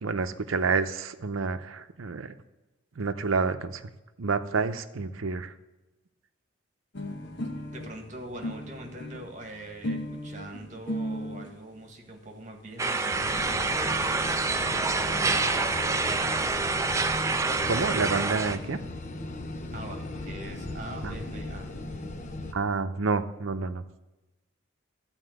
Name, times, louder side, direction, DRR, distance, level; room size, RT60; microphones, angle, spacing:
voice 1, 0.0-2.3 3.0-3.8 4.2-5.5 17.7-18.8 21.0-21.1 22.5-23.8, right 4 dB, 90° right, 10 dB, 0.7 m, -29 dB
sound 1, 6.9-11.5 12.4-12.5 12.7-12.8 13.1-13.2 13.4-14.0, equal, 60° left, 1.1 m, -37 dB
voice 2, 7.7-16.3 19.7-21.7, right 1 dB, 35° right, 3 dB, 1.5 m, -43 dB
sound 2, 12.8-18.6, right 3 dB, 15° right, 0.4 m, -27 dB
sound 3, 13.1-22.5, left 2 dB, 35° left, 0.7 m, -37 dB
13.0 x 4.4 x 7.8 m, 1.1 s
head